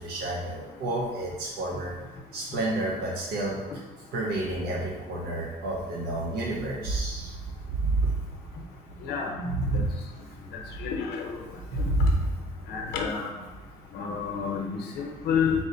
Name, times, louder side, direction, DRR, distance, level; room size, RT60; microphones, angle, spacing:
voice 1, 0.0-1.9 2.3-3.6 4.1-7.4 7.7-8.1 9.4-9.9 11.7-12.3, right 2 dB, 70° right, -3 dB, 0.8 m, -29 dB
voice 2, 9.0-9.5 9.7-9.8 10.8-11.4 12.7-13.3 13.9-15.5, left 6 dB, 75° left, 1 dB, 0.7 m, -29 dB
4.2 x 2.1 x 3.9 m, 1.3 s
cardioid pair, 110°, 17 cm